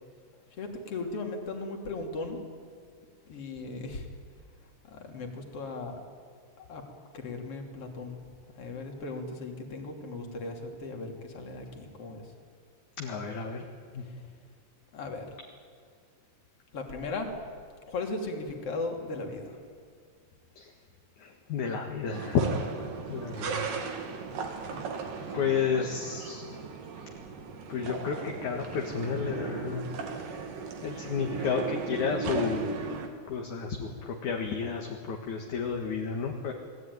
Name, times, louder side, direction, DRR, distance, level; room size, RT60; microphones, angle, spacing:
voice 1, 0.6-2.4 3.3-4.1 4.8-6.0 6.6-6.9 7.1-8.2 8.6-12.3 14.9-15.3 16.7-17.4 17.9-19.6 24.7-24.8, left 3 dB, 40° left, 2 dB, 3.7 m, -37 dB
voice 2, 13.0-14.1 20.6-20.7 21.2-22.8 23.1-23.7 25.3-26.8 27.7-30.2 30.8-32.7 33.3-36.5, left 6 dB, 60° left, 1 dB, 2.9 m, -32 dB
sound 1, 22.1-33.1, right 5 dB, 70° right, 3.7 m, -37 dB
29.0 x 19.5 x 9.6 m, 2.1 s
omnidirectional pair, 4.2 m